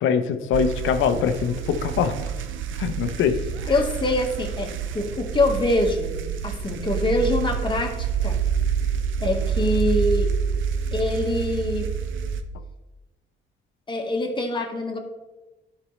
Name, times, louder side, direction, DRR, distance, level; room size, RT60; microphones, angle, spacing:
voice 1, 0.0-2.1 2.8-3.4, left 7 dB, 85° left, 9 dB, 0.7 m, -23 dB
sound 1, 0.5-12.4, right 7 dB, 75° right, 0.6 m, -27 dB
voice 2, 3.7-6.2 6.4-8.4 9.2-10.3 10.9-11.9 13.9-15.0, left 2 dB, 25° left, 2 dB, 1.4 m, -24 dB
11.5 x 5.3 x 3.1 m, 1.1 s
cardioid pair, 90°, 20 cm